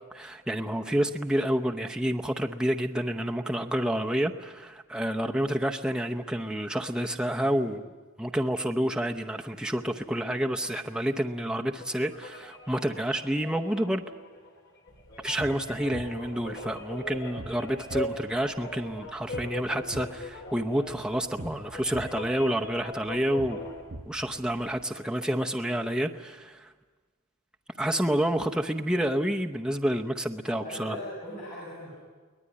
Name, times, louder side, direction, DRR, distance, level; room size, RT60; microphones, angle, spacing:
voice 1, 0.1-7.9 8.2-14.0 15.2-23.6 24.1-26.7 27.8-31.0, right 1 dB, 5° right, 3 dB, 0.8 m, -29 dB
sound 1, 11.7-23.8, left 2 dB, 55° left, 4.0 m, -41 dB
sound 2, 14.9-24.8, right 1 dB, 45° right, 0.9 m, -45 dB
voice 2, 30.4-32.0, equal, 35° left, -7 dB, 7.5 m, -40 dB
23.0 x 18.5 x 9.6 m, 1.4 s
head